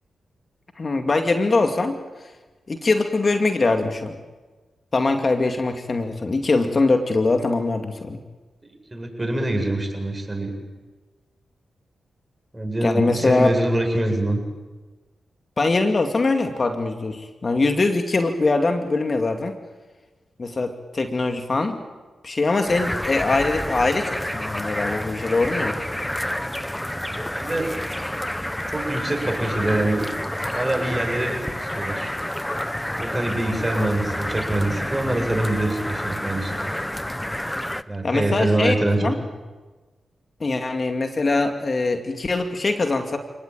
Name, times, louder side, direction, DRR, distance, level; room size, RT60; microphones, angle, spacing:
voice 1, 0.8-2.0 2.7-4.2 4.9-8.2 12.8-13.5 15.6-19.5 20.4-21.8 22.2-25.8 38.0-38.8 39.0-39.2 40.4-43.2, left 3 dB, 45° left, 6 dB, 2.4 m, -22 dB
voice 2, 8.6-10.5 12.5-14.4 27.2-27.7 28.7-30.1 30.5-32.1 33.0-36.7 37.9-39.0, right 1 dB, 25° right, 3 dB, 7.8 m, -25 dB
sound 1, 22.7-37.8, left 1 dB, 10° left, 1.0 m, -29 dB
29.0 x 18.5 x 9.0 m, 1.3 s
supercardioid pair, 45°, 0 cm